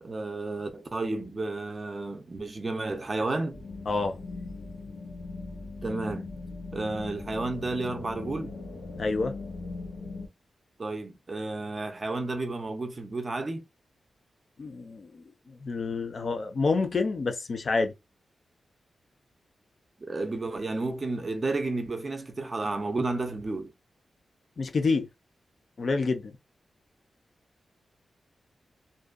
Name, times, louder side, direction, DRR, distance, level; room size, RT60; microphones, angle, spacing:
voice 1, 0.0-3.6 5.8-6.2 6.7-8.6 10.8-13.7 20.0-23.7, right 2 dB, 30° right, 0.4 m, -32 dB
sound 1, 3.5-10.3, left 3 dB, 85° left, 0.8 m, -39 dB
voice 2, 3.9-4.2 9.0-9.3 14.6-17.9 24.6-25.1 25.8-26.3, left 3 dB, 45° left, 0.4 m, -28 dB
2.5 x 2.2 x 2.4 m
wide cardioid pair, 150°, 0 cm